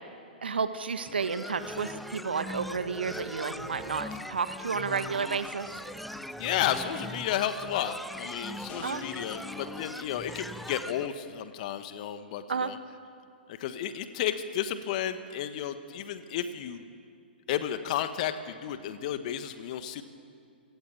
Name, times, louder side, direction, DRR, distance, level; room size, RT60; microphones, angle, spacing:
voice 1, 0.4-5.7 8.8-9.0 12.5-12.7, right 5 dB, 75° right, 10 dB, 1.6 m, -31 dB
sound 1, 1.0-11.1, equal, ahead, 0.7 m, -40 dB
voice 2, 6.4-12.8 13.5-16.8 17.5-20.0, left 10 dB, 45° left, 10 dB, 1.4 m, -32 dB
sound 2, 8.7-11.0, left 7 dB, 30° left, 3.3 m, -47 dB
29.0 x 18.0 x 8.5 m, 2.3 s
figure-of-eight pair, 115°, 6 cm